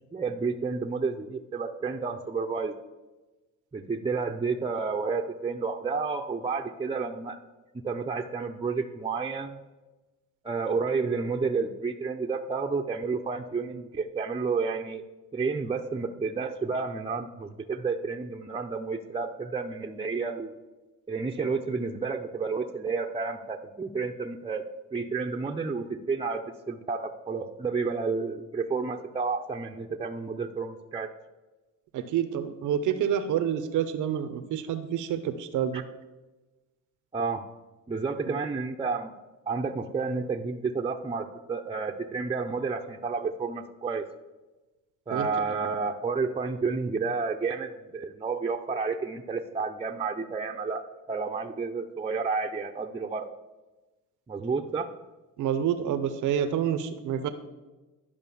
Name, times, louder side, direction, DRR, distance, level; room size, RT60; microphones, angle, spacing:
voice 1, 0.1-2.8 3.7-7.4 7.8-9.6 10.4-15.0 15.3-20.6 21.1-31.1 35.7-35.8 37.1-37.5 37.9-39.1 39.5-44.1 45.1-53.3 54.3-54.9, right 4 dB, 20° right, 3 dB, 0.7 m, -31 dB
voice 2, 31.9-35.8 45.1-45.3 55.4-57.3, right 9 dB, 80° right, 10 dB, 0.8 m, -28 dB
11.5 x 5.2 x 7.0 m, 1.1 s
cardioid pair, 90°, 30 cm